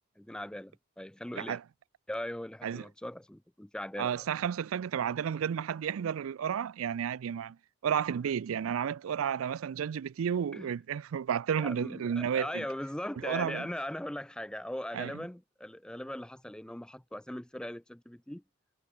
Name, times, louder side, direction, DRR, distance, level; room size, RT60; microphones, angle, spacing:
voice 1, 0.2-1.6 2.1-4.2 10.5-10.7 11.6-18.4, left 1 dB, 5° left, 0.4 m, -39 dB
voice 2, 4.0-7.6 7.8-12.6 13.2-13.7 14.9-15.1, right 8 dB, 90° right, 0.4 m, -32 dB
head